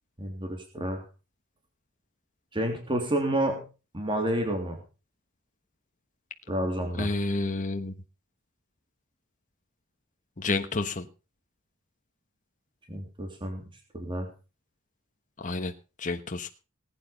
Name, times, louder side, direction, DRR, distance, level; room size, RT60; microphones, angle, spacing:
voice 1, 0.2-1.0 2.5-3.6 3.9-4.8 6.5-7.1 12.9-13.6 13.9-14.3, right 1 dB, 25° right, 3 dB, 3.1 m, -29 dB
voice 2, 6.9-7.9 10.4-11.0 15.4-15.7 16.0-16.5, left 3 dB, 35° left, 6 dB, 1.2 m, -29 dB
19.5 x 9.2 x 5.2 m, 0.33 s
head